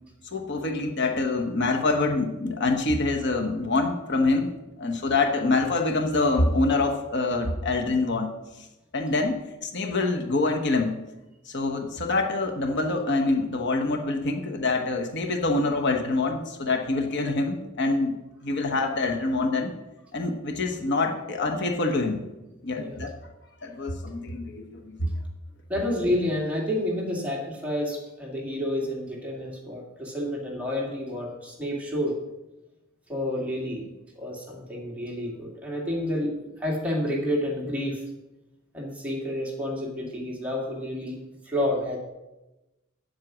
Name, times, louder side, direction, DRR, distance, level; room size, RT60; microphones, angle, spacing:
voice 1, 0.3-4.5 4.8-8.3 8.6-8.7 8.9-9.3 9.6-10.9 11.5-18.1 18.4-19.7 20.1-22.2 22.6-23.1 23.6-25.1, left 3 dB, 60° left, 4 dB, 1.1 m, -25 dB
voice 2, 25.7-32.2 33.1-38.0 38.7-42.0, left 1 dB, 5° right, -2 dB, 2.3 m, -29 dB
9.0 x 7.8 x 6.2 m, 1.0 s
head